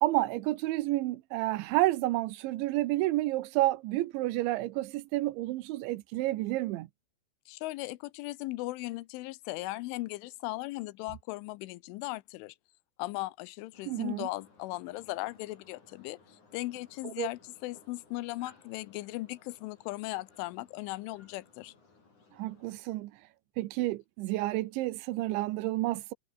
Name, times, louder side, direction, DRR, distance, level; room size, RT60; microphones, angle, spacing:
voice 1, 0.0-6.9 13.9-14.3 17.0-17.3 22.4-23.1 23.6-26.1, right 17 dB, 75° right, 3.1 m, -30 dB
voice 2, 7.5-12.6 13.0-21.7, left 19 dB, 80° left, 3.2 m, -38 dB
sound 1, 13.7-22.8, left 3 dB, 40° left, 8.2 m, -61 dB
omnidirectional pair, 5.6 m